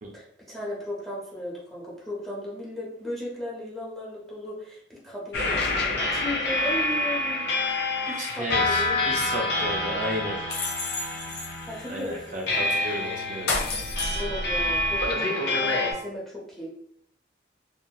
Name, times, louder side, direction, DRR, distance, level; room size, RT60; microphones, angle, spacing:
voice 1, 0.1-7.5 8.1-9.4 11.7-12.7 14.1-16.7, left 1 dB, ahead, -7 dB, 0.8 m, -36 dB
sound 1, 5.3-15.9, left 2 dB, 55° left, 0.6 m, -27 dB
voice 2, 8.2-10.4 11.9-13.5, equal, 40° right, -2 dB, 0.4 m, -33 dB
2.8 x 2.8 x 2.2 m, 0.70 s
head